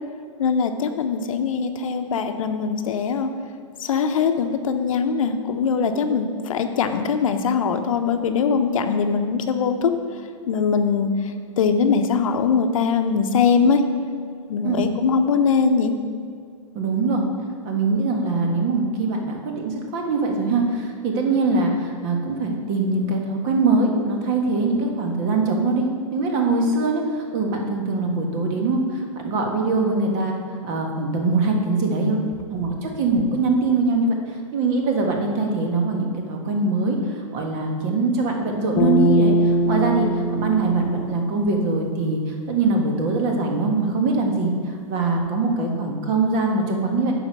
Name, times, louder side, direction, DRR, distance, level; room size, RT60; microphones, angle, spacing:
voice 1, 0.4-3.3 3.8-9.9 10.5-13.8 14.5-15.9, left 5 dB, 75° left, 7 dB, 0.8 m, -21 dB
voice 2, 16.7-17.2 17.6-30.3 30.6-32.2 32.5-47.1, right 3 dB, 40° right, 2 dB, 1.5 m, -22 dB
sound 1, 38.8-42.1, equal, 30° left, 1.1 m, -22 dB
8.7 x 5.1 x 6.2 m, 2.3 s
hypercardioid pair, 140°, 17 cm